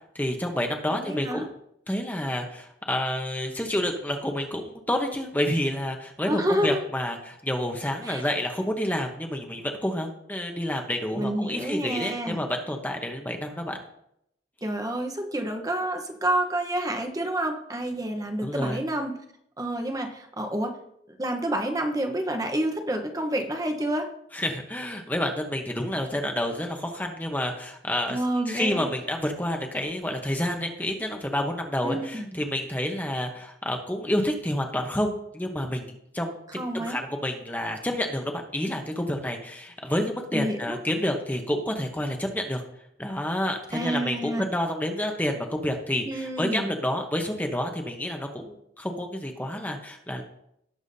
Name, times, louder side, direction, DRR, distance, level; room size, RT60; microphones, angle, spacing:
voice 1, 0.1-1.5 1.9-13.8 18.4-18.8 24.3-28.2 28.5-36.4 36.7-42.6 43.0-50.2, left 1 dB, 10° left, 3 dB, 0.9 m, -29 dB
voice 2, 0.9-1.5 6.2-6.8 8.0-8.2 11.1-12.4 14.6-19.2 19.6-20.8 21.1-24.1 28.1-28.9 31.8-32.4 36.5-37.0 40.3-40.8 43.7-44.4 46.0-46.7, right 1 dB, 20° right, 4 dB, 1.0 m, -29 dB
17.5 x 7.1 x 2.7 m, 0.75 s
head